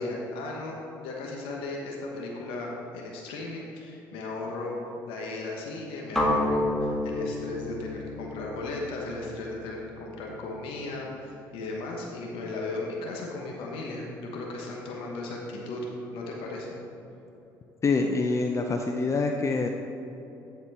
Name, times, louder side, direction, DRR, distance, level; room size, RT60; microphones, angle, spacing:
voice 1, 0.0-4.8 5.1-15.8 16.1-16.7, left 2 dB, 75° left, -1 dB, 1.1 m, -36 dB
sound 1, 6.2-10.1, left 1 dB, 5° left, 1.6 m, -30 dB
voice 2, 17.8-19.7, left 3 dB, 35° left, 4 dB, 0.5 m, -25 dB
12.5 x 4.3 x 4.2 m, 3.0 s
supercardioid pair, 70°, 9 cm